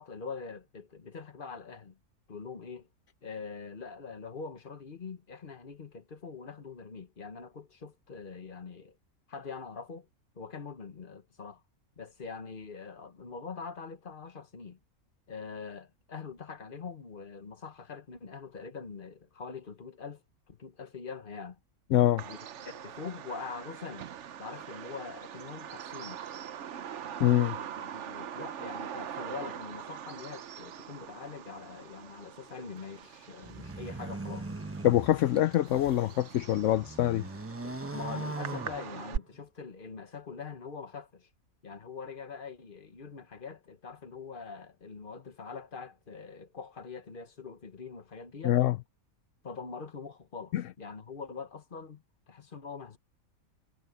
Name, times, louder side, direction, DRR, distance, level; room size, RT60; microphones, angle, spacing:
voice 1, 0.0-2.0 2.3-2.9 3.2-9.0 9.3-10.1 10.3-11.6 12.0-14.8 15.3-21.6 22.3-24.1 24.4-26.2 27.6-34.5 37.6-41.3 41.6-48.6 49.4-53.0, left 5 dB, 40° left, 1.4 m, -43 dB
voice 2, 21.9-22.2 27.2-27.6 34.8-37.2 48.4-48.8 50.5-50.6, left 13 dB, 65° left, 0.9 m, -25 dB
Bird vocalization bird call bird song, 22.2-39.2, right 9 dB, 60° right, 1.0 m, -43 dB
sound 1, 33.4-36.1 36.5-39.4, right 2 dB, 10° right, 0.8 m, -40 dB
omnidirectional pair, 1.5 m